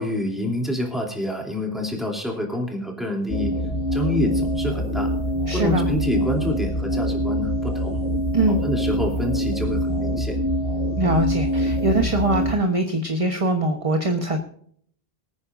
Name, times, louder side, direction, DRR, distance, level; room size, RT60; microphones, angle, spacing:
voice 1, 0.0-3.5 3.9-5.1 5.5-8.1 8.5-10.4, left 1 dB, ahead, 0 dB, 2.9 m, -27 dB
sound 1, 3.3-12.5, equal, 75° left, 4.6 m, -24 dB
voice 2, 5.5-5.9 8.3-8.6 10.9-14.4, right 2 dB, 30° right, 4 dB, 1.2 m, -22 dB
24.0 x 9.7 x 2.5 m, 0.62 s
omnidirectional pair, 1.1 m